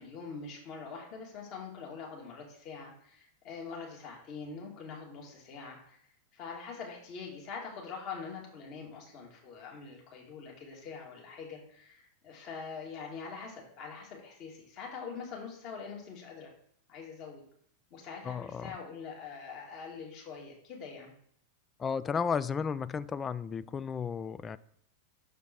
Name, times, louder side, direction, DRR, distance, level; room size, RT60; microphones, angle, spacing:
voice 1, 0.0-6.0 6.3-16.5 16.9-17.4 17.9-21.1, left 5 dB, 40° left, 2.2 m, -44 dB
voice 2, 18.2-18.7 21.8-24.6, left 6 dB, 20° left, 0.3 m, -33 dB
6.6 x 5.0 x 4.4 m
figure-of-eight pair, 90°, 0 cm